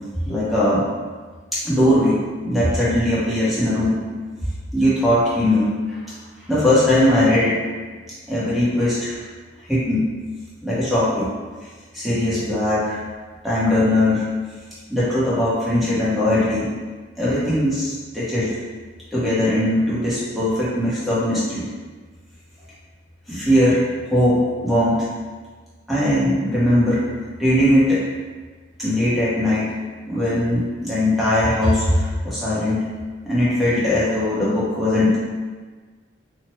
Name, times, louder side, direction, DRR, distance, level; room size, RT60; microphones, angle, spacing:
voice 1, 0.3-0.9 1.5-2.2 2.4-4.0 4.7-6.0 6.5-7.6 8.3-9.2 9.7-10.0 10.6-11.3 11.9-13.0 13.4-14.2 14.9-16.7 17.2-18.5 19.1-21.7 23.3-25.1 25.9-27.0 27.4-28.0 28.8-29.7 30.1-32.9 33.2-35.2, left 1 dB, ahead, -11 dB, 0.7 m, -19 dB
3.0 x 2.1 x 3.0 m, 1.4 s
head